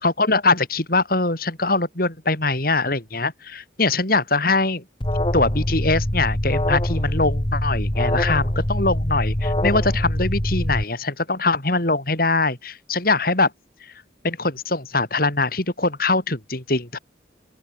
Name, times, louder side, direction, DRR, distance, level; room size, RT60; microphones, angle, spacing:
voice 1, 0.0-4.8 5.3-13.5 14.2-17.0, left 3 dB, 50° left, 4.4 m, -22 dB
Alarm, 5.0-10.8, left 1 dB, 30° left, 2.2 m, -23 dB
open air
head